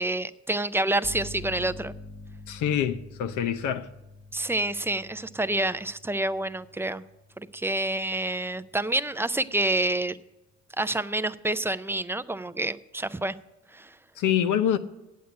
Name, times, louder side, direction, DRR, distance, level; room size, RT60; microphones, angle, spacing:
voice 1, 0.0-1.9 4.3-7.0 7.4-10.2 10.8-13.3 13.7-13.9, right 2 dB, 10° right, 0.4 m, -28 dB
sound 1, 1.0-8.8, left 2 dB, 25° left, 0.8 m, -46 dB
voice 2, 2.5-3.9 14.2-14.8, left 9 dB, 85° left, 0.8 m, -25 dB
8.6 x 8.3 x 8.6 m
cardioid pair, 90°, 30 cm